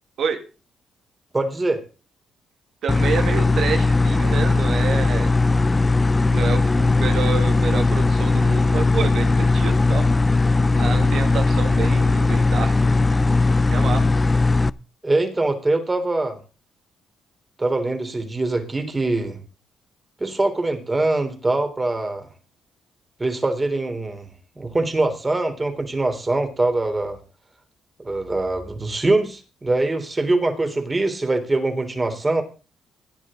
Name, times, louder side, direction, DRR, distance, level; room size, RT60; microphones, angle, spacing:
voice 1, 1.3-1.8 15.0-16.4 17.6-19.4 20.2-22.3 23.2-24.3 24.6-27.2 28.0-32.4, right 2 dB, 20° right, 7 dB, 3.5 m, -23 dB
voice 2, 2.8-5.3 6.3-10.1 10.8-12.9 13.7-14.1, right 6 dB, 65° right, 5 dB, 2.3 m, -28 dB
sound 1, 2.9-14.7, left 3 dB, 20° left, 0.6 m, -18 dB
16.5 x 10.0 x 3.8 m, 0.34 s
cardioid pair, 90°, 0 cm